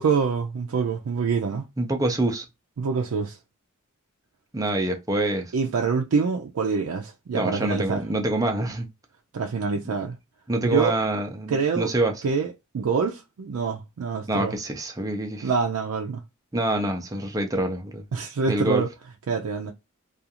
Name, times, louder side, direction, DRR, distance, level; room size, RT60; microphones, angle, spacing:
voice 1, 0.0-1.6 2.8-3.4 5.5-8.0 9.3-10.2 10.7-11.0 11.5-11.9 12.2-14.5 15.4-16.2 18.1-18.9 19.3-19.7, right 5 dB, 80° right, 0.4 m, -25 dB
voice 2, 1.8-2.4 4.5-5.5 7.3-8.9 10.5-12.2 14.3-15.5 16.5-18.0 18.5-18.8, right 1 dB, 15° right, 0.5 m, -26 dB
2.4 x 2.4 x 2.8 m
head